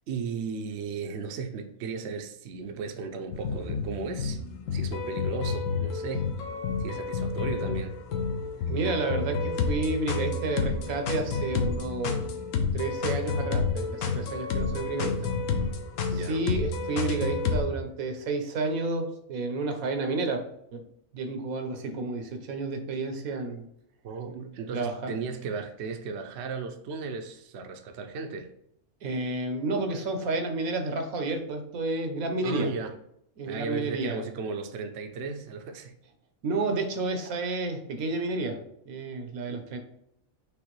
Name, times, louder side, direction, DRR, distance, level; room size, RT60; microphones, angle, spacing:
voice 1, 0.1-4.4 4.7-6.3 6.8-7.9 16.1-16.5 24.0-28.5 32.4-32.9 33.5-35.9 39.5-39.6, right 5 dB, 65° right, 5 dB, 0.8 m, -35 dB
sound 1, 3.3-17.6, left 4 dB, 70° left, 1.0 m, -30 dB
voice 2, 8.7-12.2 12.7-15.3 16.1-20.4 20.7-20.8 21.1-23.6 24.7-25.2 29.0-32.7 33.4-34.2 36.4-38.6 38.9-39.8, right 3 dB, 80° right, 6 dB, 1.2 m, -30 dB
5.2 x 3.3 x 3.1 m, 0.74 s
omnidirectional pair, 1.5 m